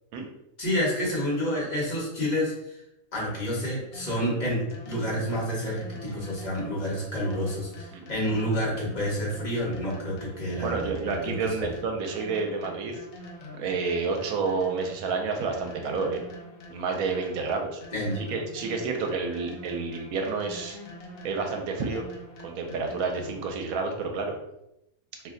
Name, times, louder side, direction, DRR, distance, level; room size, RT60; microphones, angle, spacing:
voice 1, 0.6-2.7 3.1-11.7 17.9-18.2, equal, 30° left, -5 dB, 1.1 m, -29 dB
sound 1, 3.9-23.6, equal, 60° left, 0.8 m, -45 dB
voice 2, 10.6-12.9 13.6-16.2 16.7-17.8 18.2-20.8 21.2-22.0 22.4-24.3, right 4 dB, 75° right, 3 dB, 1.0 m, -29 dB
2.7 x 2.1 x 3.6 m, 0.86 s
omnidirectional pair, 1.6 m